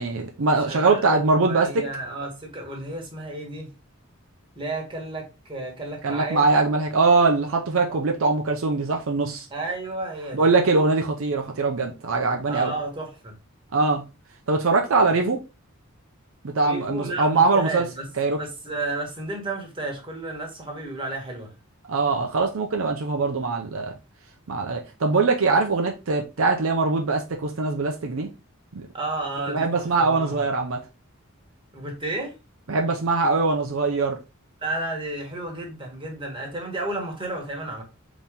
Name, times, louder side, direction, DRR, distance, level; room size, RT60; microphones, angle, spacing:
voice 1, 0.0-1.9 6.0-9.5 10.3-12.7 13.7-14.0 14.5-15.4 16.4-17.9 18.2-18.4 21.9-23.9 24.5-28.3 28.7-28.9 29.5-30.8 32.7-34.2, right 3 dB, 70° right, 0.6 m, -22 dB
voice 2, 0.7-3.7 4.5-6.5 7.9-8.0 9.5-10.5 12.5-13.3 16.6-18.1 18.3-21.5 28.9-30.5 31.7-32.4 34.6-37.8, right 2 dB, 25° right, 1.3 m, -32 dB
4.1 x 3.0 x 3.6 m
head